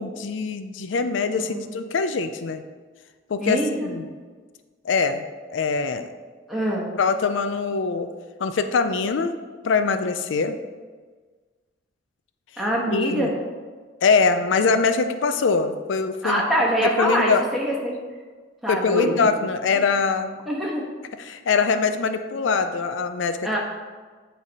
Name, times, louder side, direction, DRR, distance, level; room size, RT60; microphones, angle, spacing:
voice 1, 0.0-2.6 3.3-4.1 4.8-5.2 5.5-6.1 7.0-8.1 8.4-9.3 9.6-10.6 12.9-13.3 14.0-16.4 16.8-17.4 18.7-20.3 21.3-23.4, left 4 dB, 85° left, 9 dB, 0.4 m, -23 dB
voice 2, 3.4-4.0 6.5-6.9 12.6-13.3 16.2-17.9 18.6-19.1 19.7-19.8 20.5-20.8 23.4-23.6, equal, ahead, -5 dB, 1.3 m, -24 dB
8.7 x 3.3 x 5.3 m, 1.4 s
head